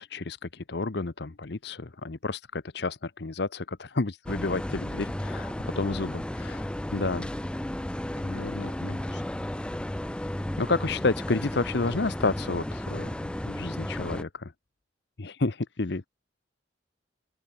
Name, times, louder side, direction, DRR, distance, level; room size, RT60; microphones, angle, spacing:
voice 1, 0.0-7.3 8.2-9.0 10.6-14.5 15.2-16.1, left 3 dB, 65° left, 0.9 m, -31 dB
sound 1, 4.3-14.2, left 1 dB, 5° left, 0.3 m, -34 dB
voice 2, 8.1-9.4 10.0-10.4 11.0-11.1, left 3 dB, 80° left, 2.5 m, -51 dB
open air
head